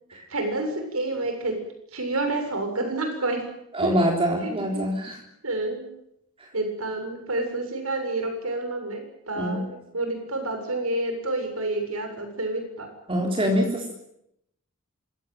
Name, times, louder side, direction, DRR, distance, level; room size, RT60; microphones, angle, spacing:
voice 1, 0.1-1.6 1.9-3.5 3.8-4.0 4.4-4.8 5.4-5.9 6.5-12.9, right 2 dB, 85° right, 5 dB, 7.3 m, -29 dB
voice 2, 3.7-5.2 9.4-9.6 13.1-13.9, equal, 25° right, 1 dB, 3.6 m, -24 dB
27.0 x 17.0 x 9.3 m, 0.79 s
head